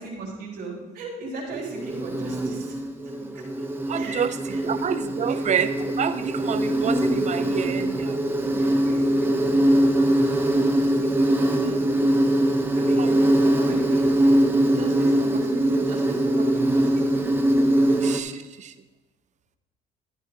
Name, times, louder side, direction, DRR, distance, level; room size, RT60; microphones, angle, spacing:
voice 1, 0.0-2.8 3.2-3.4 3.9-4.8 5.2-5.4 8.5-12.2 12.7-14.3 14.7-17.3 17.9-18.0, right 3 dB, 70° right, -5 dB, 3.9 m, -39 dB
Insect, 1.5-18.2, right 1 dB, 15° right, 1.0 m, -22 dB
voice 2, 3.9-4.3 4.6-8.2 13.0-13.4 18.0-18.7, right 8 dB, 45° right, 11 dB, 0.7 m, -28 dB
13.5 x 9.1 x 3.1 m, 1.1 s
cardioid pair, 110°, 17 cm